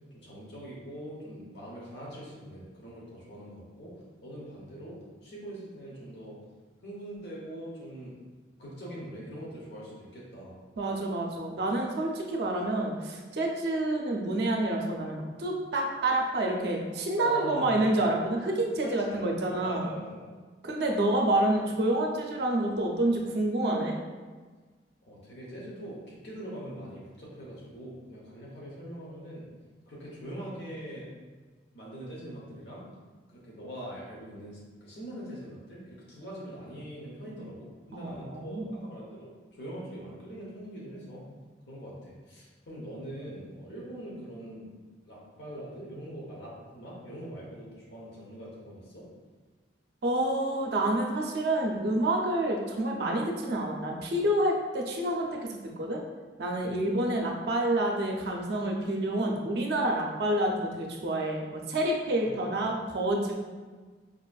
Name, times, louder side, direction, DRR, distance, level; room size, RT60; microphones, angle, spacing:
voice 1, 0.1-3.9 4.2-5.0 5.2-6.4 6.8-8.2 8.6-10.6 17.2-17.7 18.6-20.3 25.1-29.4 29.9-31.1 31.7-32.8 33.3-41.2 41.7-44.7 45.0-49.0 56.6-56.7 62.2-62.6, equal, 65° left, -5 dB, 0.9 m, -42 dB
voice 2, 10.8-19.9 20.6-23.9 37.9-38.8 50.0-56.0 56.4-63.3, right 1 dB, 60° right, 0 dB, 0.5 m, -28 dB
4.9 x 2.5 x 2.3 m, 1.4 s
head